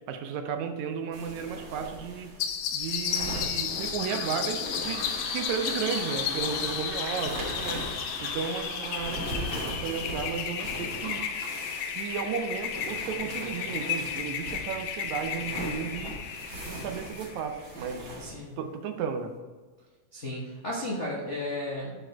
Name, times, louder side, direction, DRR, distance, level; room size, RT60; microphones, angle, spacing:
voice 1, 0.0-2.3 2.7-11.2 11.9-16.1 16.6-18.1 18.6-19.3, right 6 dB, 75° right, 6 dB, 2.0 m, -34 dB
sound 1, 1.1-18.3, equal, 50° right, 3.4 m, -41 dB
sound 2, 2.4-17.6, left 8 dB, 80° left, 2.1 m, -33 dB
Toilet flush, 3.9-17.3, equal, 5° right, 1.2 m, -44 dB
voice 2, 18.2-18.6 20.1-21.9, left 1 dB, 65° left, -4 dB, 0.7 m, -34 dB
10.0 x 4.8 x 4.4 m, 1.4 s
omnidirectional pair, 3.4 m